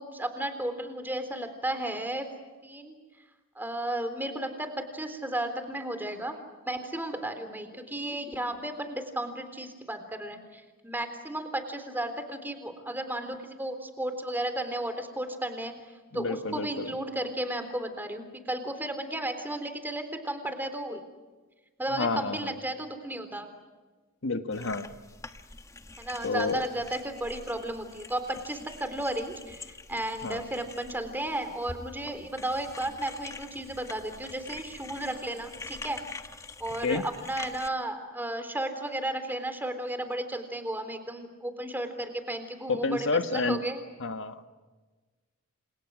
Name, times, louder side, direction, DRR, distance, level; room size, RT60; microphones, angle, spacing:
voice 1, 0.0-2.3 2.6-3.0 3.6-6.4 6.7-21.0 21.8-23.5 26.0-36.0 36.6-43.8, right 1 dB, 10° right, 8 dB, 3.6 m, -34 dB
voice 2, 16.1-16.9 21.9-22.5 24.2-24.9 26.2-26.6 30.2-30.4 36.8-37.0 42.7-43.6 44.0-44.5, left 3 dB, 60° left, 8 dB, 1.7 m, -29 dB
sound 1, 24.5-37.7, left 3 dB, 15° left, 1.2 m, -46 dB
30.0 x 28.0 x 6.3 m, 1.3 s
head